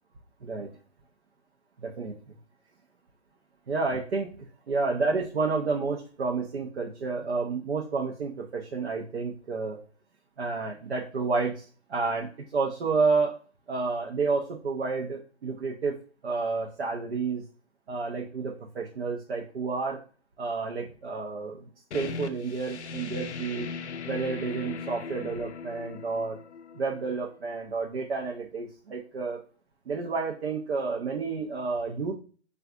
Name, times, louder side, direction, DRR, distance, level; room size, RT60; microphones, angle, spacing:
voice 1, 1.8-2.3 3.7-4.3 4.7-9.8 10.4-11.6 11.9-13.4 13.7-16.0 16.2-17.4 17.9-20.0 20.4-23.7 24.0-26.4 26.7-29.4 29.9-32.1, right 4 dB, 65° right, 0 dB, 0.7 m, -30 dB
sound 1, 21.9-27.4, left 5 dB, 80° left, 0.5 m, -39 dB
3.5 x 2.4 x 2.3 m, 0.39 s
hypercardioid pair, 160°, 34 cm